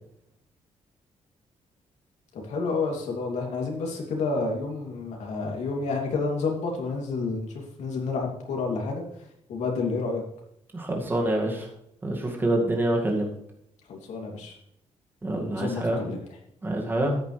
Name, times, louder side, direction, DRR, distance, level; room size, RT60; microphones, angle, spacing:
voice 1, 2.3-9.0 9.5-10.2 13.9-14.5 15.5-16.2, left 4 dB, 80° left, 0 dB, 2.9 m, -29 dB
voice 2, 10.7-11.7 12.0-13.3 15.2-16.0 16.6-17.2, right 1 dB, 20° right, 0 dB, 2.1 m, -26 dB
13.5 x 10.0 x 3.4 m, 0.75 s
cardioid pair, 165°, 12 cm